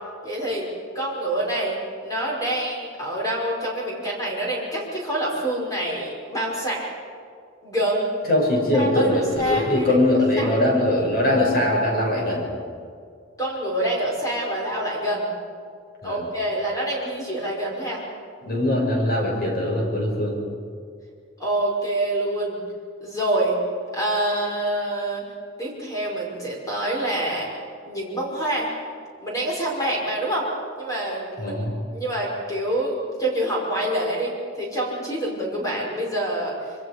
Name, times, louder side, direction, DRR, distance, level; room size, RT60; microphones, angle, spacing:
voice 1, 0.2-0.7 0.9-1.8 2.0-6.9 7.6-8.1 8.7-9.9 10.4-10.5 13.4-15.3 16.0-18.0 21.4-22.6 23.0-23.6 23.9-25.2 25.6-27.5 27.9-28.7 29.2-30.5 30.8-31.6 31.9-36.6, right 1 dB, 20° left, -3 dB, 5.5 m, -26 dB
voice 2, 8.3-12.5 16.0-16.2 18.4-20.3 31.4-31.7, left 1 dB, 50° left, -1 dB, 6.4 m, -21 dB
26.5 x 24.5 x 5.1 m, 2.2 s
head